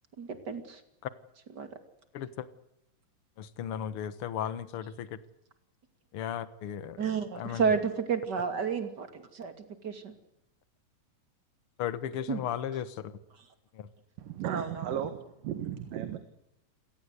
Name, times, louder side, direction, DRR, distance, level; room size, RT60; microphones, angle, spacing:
voice 1, 0.2-0.8 1.6-1.7 7.0-10.1 12.3-12.4 14.4-15.0, right 6 dB, 35° right, 8 dB, 2.7 m, -31 dB
voice 2, 2.1-2.5 3.4-5.2 6.1-7.0 7.3-7.7 11.8-13.2 13.7-13.9, left 9 dB, 55° left, 14 dB, 1.7 m, -35 dB
voice 3, 14.2-16.2, right 10 dB, 80° right, 9 dB, 3.2 m, -35 dB
28.5 x 18.0 x 8.2 m, 0.82 s
omnidirectional pair, 3.9 m